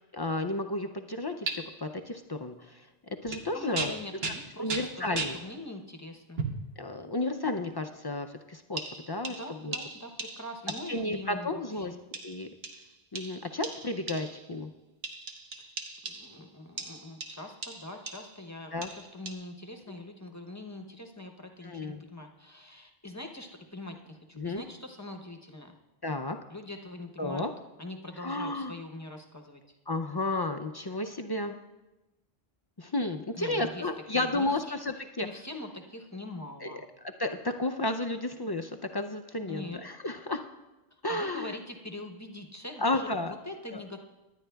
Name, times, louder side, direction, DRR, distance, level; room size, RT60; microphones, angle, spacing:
voice 1, 0.1-2.9 3.2-3.9 4.6-5.4 6.8-9.8 10.9-11.9 12.2-12.5 13.1-14.7 18.7-18.9 19.9-20.0 21.6-22.0 24.4-24.6 26.0-26.4 27.2-27.5 28.2-28.7 29.9-31.6 32.8-35.3 36.6-40.4 41.0-41.6 42.8-43.3 43.7-43.8, left 2 dB, 45° left, 5 dB, 0.3 m, -32 dB
sound 1, 1.5-1.6 3.3-3.5 3.7-5.4 6.4-6.7 7.4-7.6 8.8-11.1 12.1-14.5 15.0-16.4 16.8-18.4 18.8-19.3, right 4 dB, 75° right, 1.2 m, -38 dB
voice 2, 3.5-6.5 9.3-12.0 16.0-25.7 26.5-27.5 27.8-29.8 33.3-33.9 34.1-36.8 39.5-39.8 40.9-44.0, left 1 dB, 20° left, 3 dB, 0.7 m, -43 dB
18.5 x 10.5 x 2.3 m, 1.0 s
omnidirectional pair, 1.0 m